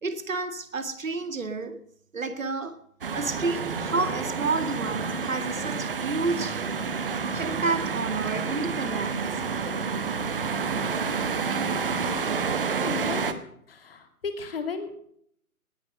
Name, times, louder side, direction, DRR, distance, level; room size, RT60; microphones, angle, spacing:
voice 1, 0.0-1.8 2.1-2.8 3.1-6.6 7.3-9.4, right 3 dB, 60° right, 11 dB, 2.1 m, -30 dB
sound 1, 3.0-13.3, right 5 dB, 35° right, 1.4 m, -29 dB
voice 2, 11.9-13.4 13.7-14.9, left 5 dB, 40° left, 8 dB, 2.9 m, -36 dB
19.0 x 10.5 x 6.4 m, 0.66 s
figure-of-eight pair, 145°, 45 cm